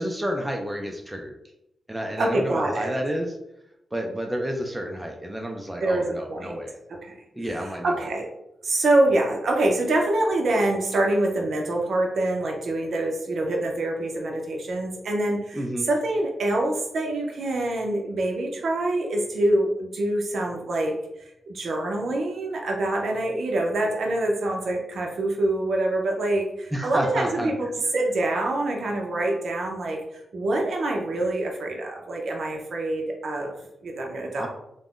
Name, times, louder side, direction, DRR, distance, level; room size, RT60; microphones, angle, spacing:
voice 1, 0.0-1.3 1.9-3.4 3.9-6.7 7.3-8.1 15.5-15.9 26.7-27.7 34.4-34.5, equal, 5° right, 1 dB, 0.3 m, -30 dB
voice 2, 2.2-2.9 5.8-6.6 6.9-7.1 7.6-8.3 8.6-20.9 21.2-27.7 27.9-30.0 30.3-34.5, right 2 dB, 60° right, 1 dB, 0.5 m, -25 dB
2.4 x 2.1 x 3.5 m, 0.83 s
wide cardioid pair, 170°, 0 cm